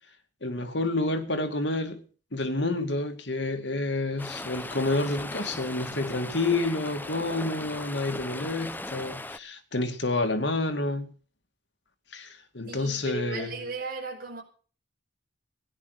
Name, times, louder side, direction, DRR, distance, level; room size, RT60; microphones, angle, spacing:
voice 1, 0.4-2.1 2.3-11.1 12.1-13.5, left 2 dB, 65° left, 2.3 m, -29 dB
Stream, 4.2-9.4, left 2 dB, 10° left, 0.7 m, -38 dB
voice 2, 12.7-14.4, right 3 dB, 50° right, 5.3 m, -36 dB
16.5 x 10.5 x 6.6 m
head